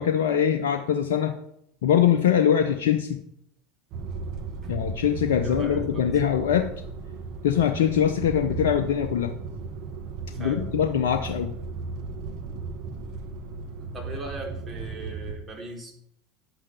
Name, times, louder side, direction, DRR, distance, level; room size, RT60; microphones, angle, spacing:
voice 1, 0.0-1.3 1.8-3.2 4.7-6.7 7.4-9.3 10.4-11.5, left 9 dB, 70° left, 6 dB, 0.7 m, -23 dB
sound 1, 3.9-15.4, right 4 dB, 50° right, 1.3 m, -35 dB
voice 2, 5.4-6.1 10.3-10.6 13.8-15.9, right 2 dB, 25° right, 0 dB, 3.4 m, -39 dB
11.0 x 8.8 x 3.5 m, 0.71 s
hypercardioid pair, 75°, 0 cm